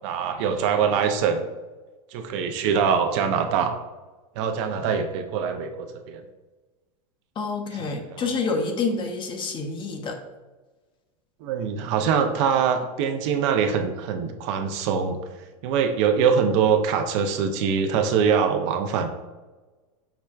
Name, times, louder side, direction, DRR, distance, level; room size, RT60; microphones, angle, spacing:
voice 1, 0.0-1.4 2.1-3.8 4.4-6.3 8.1-8.3 11.4-15.2 15.6-19.1, right 6 dB, 55° right, 6 dB, 0.4 m, -23 dB
voice 2, 7.4-10.2, left 4 dB, 30° left, 4 dB, 0.5 m, -28 dB
5.7 x 2.1 x 2.3 m, 1.2 s
supercardioid pair, 125°, 18 cm